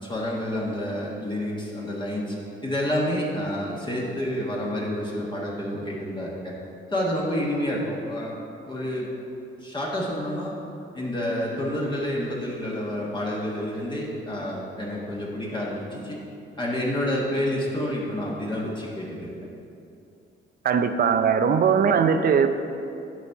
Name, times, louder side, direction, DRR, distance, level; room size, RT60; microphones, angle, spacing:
voice 1, 0.0-2.3 2.6-6.5 6.9-8.4 8.6-9.1 9.6-10.5 10.9-16.2 16.6-19.3, left 1 dB, 25° left, -4 dB, 1.4 m, -29 dB
voice 2, 20.6-22.5, right 6 dB, 50° right, 9 dB, 0.5 m, -20 dB
11.5 x 4.2 x 4.6 m, 2.6 s
cardioid pair, 90°, 20 cm